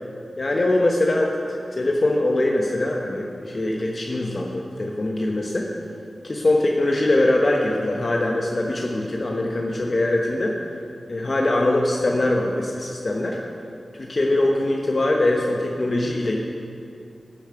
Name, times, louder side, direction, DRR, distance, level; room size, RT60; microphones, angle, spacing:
voice 1, 0.4-1.3 1.7-5.7 6.2-10.5 11.1-13.4 13.9-16.4, left 1 dB, 50° left, 0 dB, 0.9 m, -22 dB
12.5 x 7.1 x 4.9 m, 2.4 s
cardioid pair, 45°, 0 cm